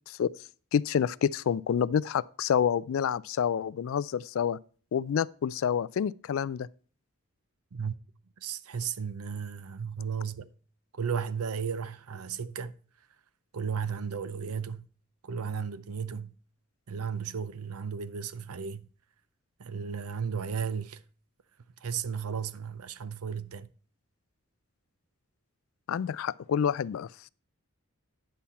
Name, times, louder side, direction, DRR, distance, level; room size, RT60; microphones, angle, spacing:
voice 1, 0.7-4.6 4.9-6.7 25.9-27.1, left 8 dB, 65° left, 0.3 m, -28 dB
voice 2, 8.4-10.5 10.9-12.7 13.5-14.9 15.2-16.3 16.9-18.9 19.6-21.0 21.8-23.7, right 6 dB, 85° right, 0.6 m, -34 dB
10.0 x 5.8 x 4.1 m
head